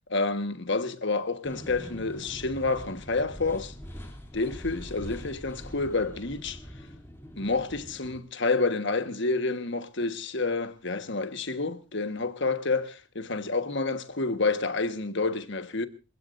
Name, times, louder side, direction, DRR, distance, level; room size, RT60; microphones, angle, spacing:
voice 1, 0.1-3.7 4.3-6.6 7.4-15.9, left 3 dB, 55° left, 1.4 m, -29 dB
sound 1, 1.4-8.2, equal, 10° left, 2.9 m, -43 dB
27.5 x 16.0 x 2.6 m
head